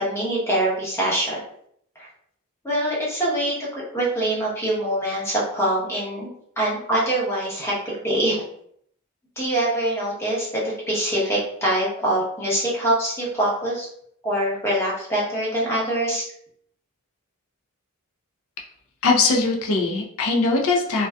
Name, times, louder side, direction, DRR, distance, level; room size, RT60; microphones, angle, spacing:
voice 1, 0.0-1.4 2.0-2.1 2.6-6.3 6.6-7.7 8.0-8.4 9.4-13.9 14.2-16.3, right 1 dB, 10° left, -6 dB, 0.8 m, -24 dB
voice 2, 19.0-21.1, left 3 dB, 65° left, 1 dB, 0.5 m, -21 dB
2.6 x 2.2 x 2.2 m, 0.68 s
head